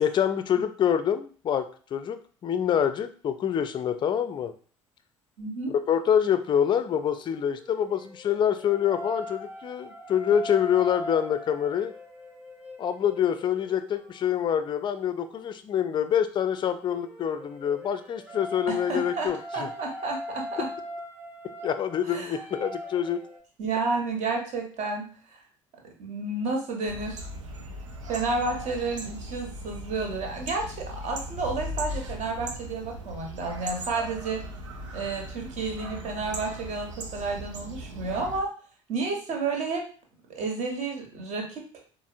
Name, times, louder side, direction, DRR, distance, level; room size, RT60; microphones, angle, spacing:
voice 1, 0.0-1.7 1.9-4.5 5.9-11.9 12.8-19.7 21.6-23.2, left 9 dB, 30° left, 10 dB, 0.4 m, -26 dB
voice 2, 5.4-5.8 18.7-20.7 22.0-22.4 23.6-25.4 26.0-27.3 28.1-34.4 34.9-38.5 38.9-39.9 40.3-41.7, right 3 dB, 45° right, 2 dB, 0.9 m, -31 dB
sound 1, 7.2-15.5 16.6-23.4, equal, 10° right, 0.7 m, -41 dB
sound 2, 26.9-38.4, right 1 dB, 75° right, 0.5 m, -38 dB
4.2 x 2.0 x 2.5 m, 0.42 s
figure-of-eight pair, 55°, 16 cm